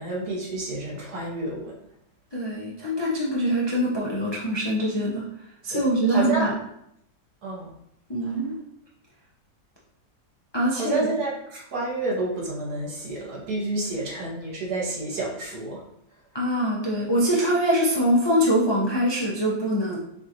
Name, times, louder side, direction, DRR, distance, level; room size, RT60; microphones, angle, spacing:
voice 1, 0.0-1.8 5.7-6.5 7.4-7.7 8.2-8.4 10.7-15.8, right 2 dB, 70° right, -4 dB, 1.8 m, -29 dB
voice 2, 2.3-5.2 5.6-6.5 8.1-8.5 10.5-11.0 16.3-20.0, equal, 35° left, -6 dB, 0.4 m, -23 dB
6.5 x 2.5 x 2.9 m, 0.76 s
omnidirectional pair, 1.7 m